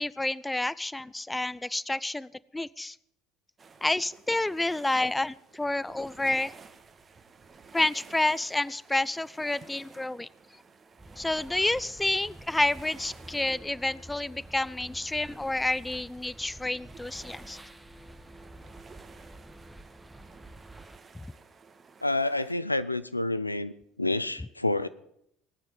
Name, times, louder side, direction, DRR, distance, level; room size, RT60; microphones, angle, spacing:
voice 1, 0.0-3.0 3.8-6.5 7.7-10.3 11.2-17.6 21.1-21.2, left 2 dB, 10° left, 21 dB, 0.5 m, -29 dB
sound 1, 3.6-22.5, right 5 dB, 30° right, 1.5 m, -53 dB
sound 2, 11.0-21.0, right 1 dB, 5° right, 1.0 m, -49 dB
voice 2, 22.0-23.7 24.0-24.9, left 2 dB, 90° left, 14 dB, 0.5 m, -28 dB
18.5 x 9.3 x 7.2 m, 0.76 s
figure-of-eight pair, 60°, 0 cm